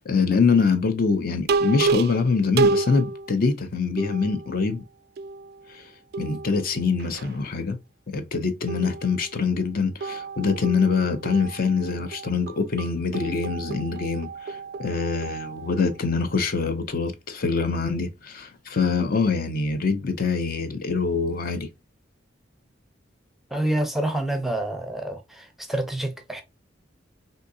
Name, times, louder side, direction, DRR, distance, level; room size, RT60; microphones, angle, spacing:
voice 1, 0.1-4.8 5.7-5.9 6.2-7.8 8.1-21.7, left 4 dB, 50° left, 0.5 m, -24 dB
sound 1, 1.5-3.4 4.0-4.8 5.2-5.8 6.1-7.4 8.7-9.5 10.0-16.2, right 4 dB, 55° right, 0.3 m, -30 dB
voice 2, 23.5-26.4, right 1 dB, ahead, 0.6 m, -27 dB
3.6 x 2.6 x 2.6 m
head